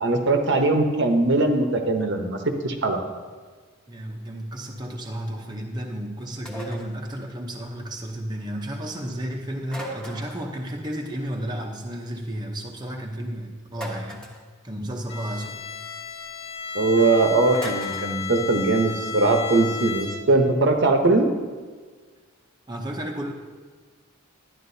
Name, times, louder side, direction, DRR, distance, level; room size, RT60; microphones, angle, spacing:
voice 1, 0.0-3.0 16.7-21.3, right 2 dB, 60° right, 4 dB, 0.9 m, -21 dB
voice 2, 3.9-14.3 14.6-15.6 22.7-23.3, right 1 dB, 20° right, 0 dB, 0.7 m, -32 dB
sound 1, 6.5-7.0 9.7-10.5 13.7-14.4 17.5-18.1, equal, 5° left, 1.1 m, -37 dB
Bowed string instrument, 15.1-20.5, left 6 dB, 30° left, 1.2 m, -34 dB
11.0 x 11.0 x 2.7 m, 1.5 s
head